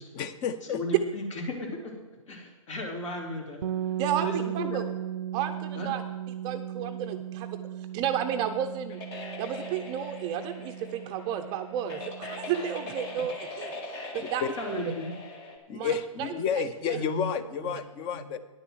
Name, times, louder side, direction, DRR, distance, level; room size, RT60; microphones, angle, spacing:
voice 1, 0.1-0.8 14.2-14.5 15.7-18.4, left 7 dB, 25° left, 13 dB, 0.7 m, -31 dB
voice 2, 0.7-1.9 2.3-3.6 4.2-4.8 5.7-5.9 14.6-15.1 16.9-17.3 17.6-17.7 18.1-18.2, left 1 dB, 60° left, 1 dB, 3.2 m, -35 dB
sound 1, 3.6-13.4, right 10 dB, 75° right, 0.5 m, -37 dB
voice 3, 4.0-4.8 5.3-6.0 6.4-7.6 7.9-9.0 9.4-13.8 14.1-14.4 15.7-16.3 16.5-16.6 16.9-17.0 17.7-17.8, right 9 dB, 25° right, 7 dB, 0.5 m, -32 dB
sound 2, 8.9-15.6, left 2 dB, 45° left, 2.4 m, -41 dB
10.0 x 6.6 x 7.7 m, 1.2 s
hypercardioid pair, 135°, 18 cm